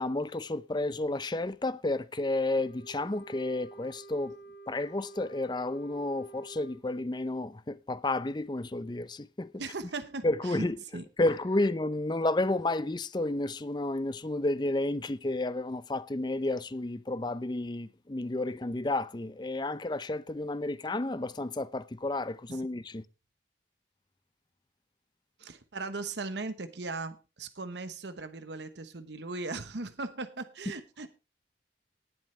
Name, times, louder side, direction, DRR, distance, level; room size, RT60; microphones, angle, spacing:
voice 1, 0.0-4.4 4.7-9.5 10.2-10.8 11.2-23.0, left 2 dB, 25° left, 0.6 m, -31 dB
Wind instrument woodwind instrument, 2.3-6.8, right 3 dB, 60° left, 3.1 m, -50 dB
voice 2, 9.6-11.1 22.5-22.6 25.4-31.1, right 3 dB, 75° right, 1.0 m, -38 dB
19.0 x 7.7 x 3.2 m
head